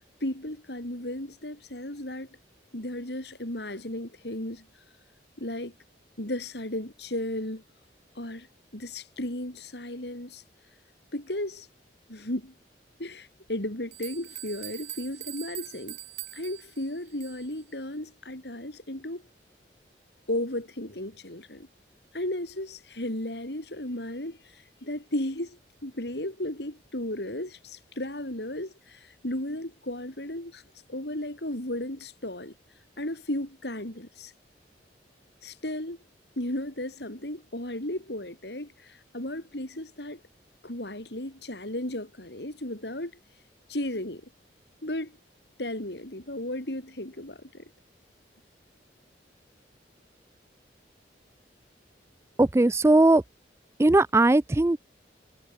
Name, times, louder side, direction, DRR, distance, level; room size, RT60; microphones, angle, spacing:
voice 1, 0.2-2.4 2.7-4.8 5.4-5.7 6.2-7.6 8.1-8.5 8.7-10.4 11.1-11.7 12.1-12.5 13.0-16.0 16.3-19.2 20.3-21.7 22.1-30.6 30.9-34.3 35.4-36.0 36.4-40.2 40.6-43.1 43.7-44.3 44.8-45.2 45.6-47.7, left 1 dB, 70° left, 4.6 m, -35 dB
sound 1, 13.5-13.6 13.9-17.6, right 15 dB, 80° right, 4.6 m, -42 dB
voice 2, 52.4-53.2 53.8-54.8, right 2 dB, 15° right, 0.4 m, -19 dB
head